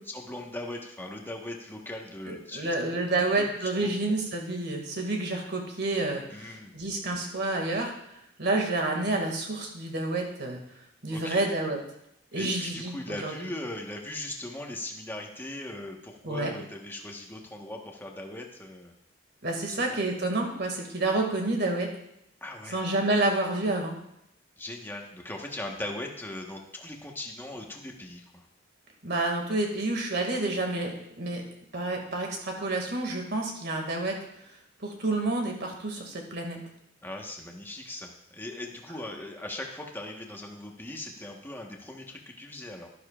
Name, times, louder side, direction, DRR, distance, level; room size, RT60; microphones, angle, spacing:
voice 1, 0.1-2.7 3.1-3.5 3.8-4.2 6.3-6.8 11.1-11.4 12.3-18.9 19.7-20.0 22.4-22.8 24.6-28.4 37.0-42.9, left 1 dB, 10° left, 1 dB, 1.3 m, -39 dB
voice 2, 2.3-7.9 8.4-10.6 11.0-11.8 12.3-13.5 16.2-16.5 19.4-21.9 22.7-24.0 29.0-31.4 31.7-34.1 34.8-36.6, right 2 dB, 60° right, 2 dB, 2.3 m, -29 dB
12.0 x 11.5 x 2.5 m, 0.77 s
head